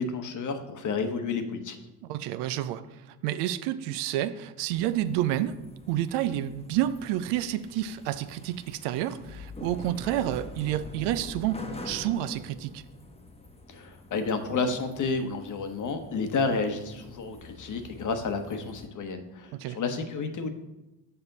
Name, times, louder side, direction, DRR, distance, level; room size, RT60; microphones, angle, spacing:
voice 1, 0.0-1.8 13.7-20.5, left 4 dB, 40° left, 7 dB, 1.1 m, -31 dB
voice 2, 2.1-5.6 5.9-12.8 19.5-19.8, right 12 dB, 65° right, 13 dB, 0.6 m, -29 dB
sound 1, 4.7-18.9, left 2 dB, 15° left, 1.0 m, -46 dB
6.9 x 5.5 x 4.0 m, 0.98 s
hypercardioid pair, 60°, 45 cm